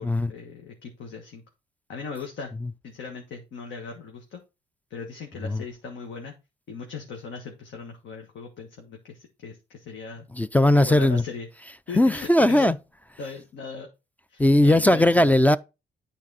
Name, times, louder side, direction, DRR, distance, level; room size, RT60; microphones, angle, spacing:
voice 1, 0.0-1.4 1.9-2.5 2.8-4.4 4.9-6.3 6.7-10.3 10.7-11.5 11.9-12.7 13.2-13.9 14.3-15.3, left 5 dB, 70° left, 1.5 m, -39 dB
voice 2, 10.4-11.2 12.0-12.8 14.4-15.6, left 1 dB, 10° left, 0.3 m, -18 dB
8.7 x 4.1 x 4.1 m
cardioid pair, 90°, 20 cm